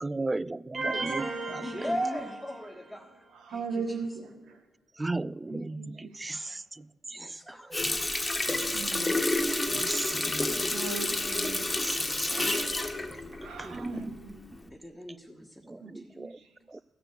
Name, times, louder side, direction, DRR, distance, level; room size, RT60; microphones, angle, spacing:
voice 1, 0.0-1.9 5.0-8.0 8.5-8.6 9.1-10.7 11.8-12.3 13.6-14.1 15.7-16.3 16.7-16.8, right 2 dB, 25° right, 20 dB, 0.3 m, -37 dB
sound 1, 0.7-2.8, right 3 dB, 45° right, 2.3 m, -35 dB
voice 2, 1.6-3.1 7.2-7.7 9.7-10.4 12.0-12.5 14.8-15.4, equal, 5° left, 0 dB, 1.5 m, -37 dB
voice 3, 3.3-4.6 5.5-6.6 8.7-9.2 10.4-12.7 13.3-14.4 15.8-15.9 16.2-16.5, right 4 dB, 80° right, 4 dB, 1.6 m, -39 dB
Water tap faucet, 7.7-14.1 14.5-14.7, left 2 dB, 20° left, 1.4 m, -29 dB
14.0 x 6.0 x 8.2 m, 1.1 s
supercardioid pair, 55°, 0 cm